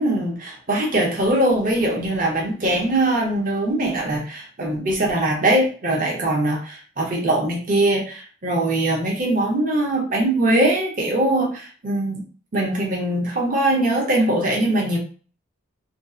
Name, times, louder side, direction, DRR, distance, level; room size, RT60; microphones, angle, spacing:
voice 1, 0.0-12.2 12.5-15.0, right 1 dB, 45° right, -1 dB, 0.7 m, -21 dB
2.5 x 2.3 x 2.4 m, 0.39 s
head